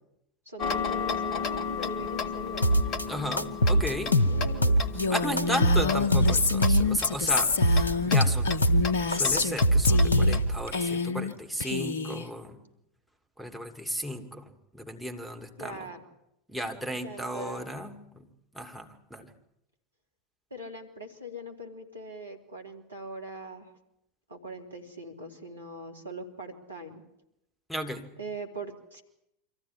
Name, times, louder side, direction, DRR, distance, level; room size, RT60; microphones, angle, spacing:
voice 1, 0.4-2.7 4.2-4.7 5.0-6.1 15.6-16.0 17.0-17.7 20.5-23.7 24.3-27.0 28.2-29.0, right 1 dB, 80° right, 3 dB, 3.1 m, -41 dB
Tick-tock, 0.6-10.8, left 5 dB, 40° left, 1.7 m, -35 dB
sound 1, 2.6-3.0 3.4-5.0 5.4-7.0 7.4-8.9 9.1-10.6, equal, 85° left, 0.9 m, -23 dB
voice 2, 3.1-4.2 5.1-8.7 9.1-12.6 13.4-15.9 16.5-18.3 18.5-19.3 27.7-28.1, equal, ahead, 7 dB, 2.5 m, -35 dB
Female speech woman speaking, 4.9-9.6 9.8-10.4 10.7-11.3 11.6-12.3, left 4 dB, 65° left, 1.2 m, -28 dB
25.5 x 15.0 x 9.8 m, 0.83 s
figure-of-eight pair, 80°, 0 cm